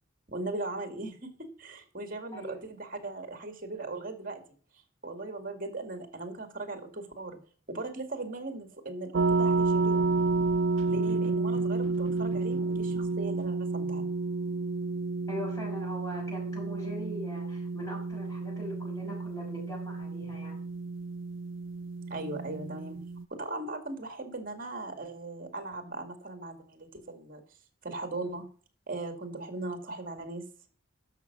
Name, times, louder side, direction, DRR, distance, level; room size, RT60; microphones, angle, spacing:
voice 1, 0.3-4.4 5.0-7.4 7.7-10.1 10.9-14.1 22.1-23.0 23.3-27.4 27.8-28.4 28.9-30.4, right 2 dB, 45° right, 6 dB, 2.2 m, -38 dB
voice 2, 2.3-2.6 15.3-20.6, equal, 15° left, -3 dB, 6.5 m, -41 dB
sound 1, 9.1-23.2, right 3 dB, 75° right, 0.4 m, -30 dB
12.0 x 6.6 x 6.0 m, 0.42 s
head